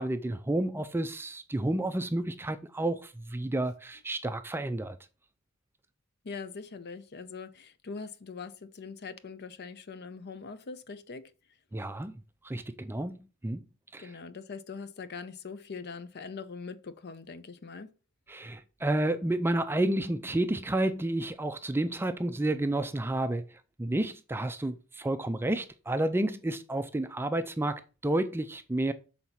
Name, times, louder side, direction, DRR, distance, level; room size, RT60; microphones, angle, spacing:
voice 1, 0.0-5.0 11.7-12.2 12.4-13.6 13.9-14.1 18.3-23.5 23.8-28.9, right 1 dB, 10° right, 0.4 m, -30 dB
voice 2, 6.2-11.3 14.0-17.9, left 4 dB, 50° left, 0.6 m, -42 dB
6.2 x 4.0 x 5.6 m
head